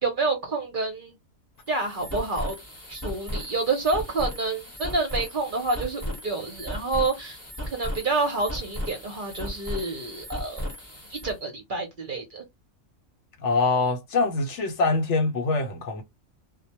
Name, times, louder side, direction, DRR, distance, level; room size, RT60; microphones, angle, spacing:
voice 1, 0.0-1.2 1.7-2.6 2.9-7.4 7.7-10.7 11.1-12.4, right 3 dB, 50° right, 0.7 m, -28 dB
sound 1, 1.6-11.4, equal, 10° left, 0.9 m, -36 dB
voice 2, 13.4-16.0, left 3 dB, 70° left, 0.8 m, -24 dB
2.2 x 2.2 x 2.7 m
omnidirectional pair, 1.4 m